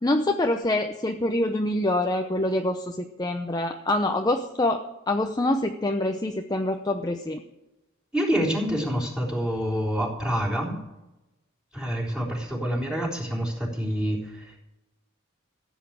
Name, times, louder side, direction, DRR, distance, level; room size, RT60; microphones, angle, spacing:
voice 1, 0.0-7.4, left 1 dB, 20° left, 4 dB, 0.7 m, -25 dB
voice 2, 8.1-10.8 11.7-14.6, equal, 5° right, -3 dB, 3.7 m, -27 dB
15.0 x 8.3 x 8.8 m, 0.96 s
head